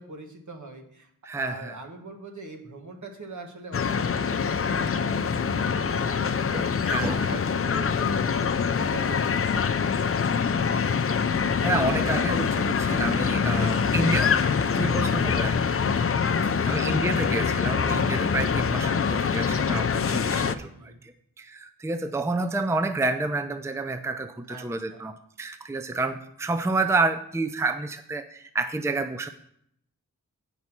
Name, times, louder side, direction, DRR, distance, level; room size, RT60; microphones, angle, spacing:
voice 1, 0.0-5.3 5.6-9.5 16.3-16.7 20.7-21.0 24.5-25.0, right 2 dB, 60° right, 3 dB, 1.7 m, -42 dB
voice 2, 1.2-1.8 6.5-7.3 11.4-14.4 14.7-16.2 16.6-29.3, right 3 dB, 10° right, 8 dB, 0.5 m, -29 dB
sound 1, 3.7-20.5, left 6 dB, 45° left, 0.5 m, -24 dB
8.4 x 5.4 x 6.1 m, 0.71 s
wide cardioid pair, 65°, 33 cm